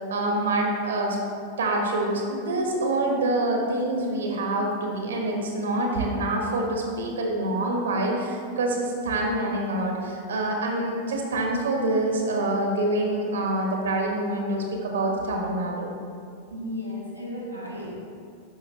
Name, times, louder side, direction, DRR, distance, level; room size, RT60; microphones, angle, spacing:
voice 1, 0.1-1.2 1.6-15.9, right 1 dB, 65° right, 0 dB, 1.5 m, -26 dB
voice 2, 16.5-17.9, left 1 dB, 90° left, -3 dB, 1.5 m, -34 dB
11.5 x 5.9 x 3.2 m, 2.3 s
figure-of-eight pair, 90°, 0 cm